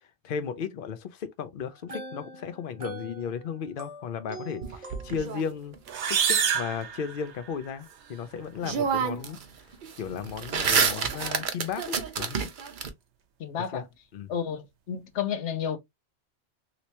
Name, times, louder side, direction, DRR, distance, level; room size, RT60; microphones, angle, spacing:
voice 1, 0.2-5.8 6.1-9.4 10.0-12.5 13.7-13.9 14.1-14.3, left 7 dB, 55° left, 0.7 m, -35 dB
sound 1, 1.7-5.6, right 1 dB, 30° right, 1.1 m, -43 dB
sound 2, 4.6-5.9 8.1-8.2 8.6-9.4 9.7-12.9, right 6 dB, 50° right, 0.7 m, -28 dB
sound 3, 5.9-7.7, right 7 dB, 75° right, 1.0 m, -27 dB
voice 2, 13.4-13.8 14.3-15.8, left 8 dB, 75° left, 1.0 m, -31 dB
3.2 x 3.0 x 2.8 m
omnidirectional pair, 1.2 m